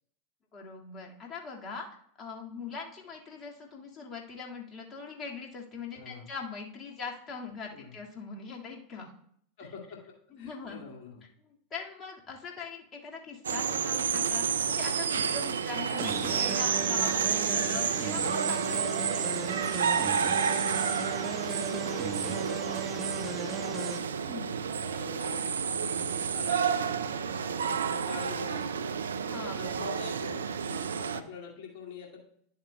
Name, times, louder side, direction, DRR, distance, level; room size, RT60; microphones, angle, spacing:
voice 1, 0.5-1.9 2.2-9.1 10.3-10.8 11.7-19.4 24.2-24.5 29.3-29.8, left 5 dB, 35° left, -1 dB, 1.9 m, -41 dB
voice 2, 6.0-6.3 7.7-7.9 9.6-10.0 10.3-11.2 15.7-15.9 17.5-17.9 19.3-19.7 21.3-24.2 24.8-32.2, left 6 dB, 55° left, -1 dB, 2.2 m, -46 dB
sound 1, 13.4-31.2, right 7 dB, 80° right, 0.4 m, -30 dB
sound 2, 16.0-24.0, right 5 dB, 25° right, 1.1 m, -37 dB
11.0 x 7.2 x 2.2 m, 0.66 s
figure-of-eight pair, 85°, 0 cm